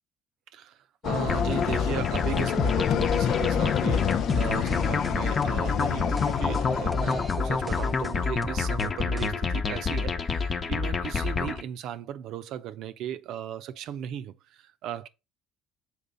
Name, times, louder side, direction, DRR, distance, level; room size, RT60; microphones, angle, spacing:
voice 1, 0.5-15.1, right 10 dB, 70° right, 0.7 m, -36 dB
sound 1, 1.0-8.1, left 9 dB, 60° left, 0.4 m, -29 dB
sound 2, 1.3-11.6, left 5 dB, 35° left, 0.9 m, -28 dB
sound 3, 4.0-9.3, right 1 dB, 10° right, 0.5 m, -42 dB
7.0 x 4.5 x 3.9 m
cardioid pair, 95°, 0 cm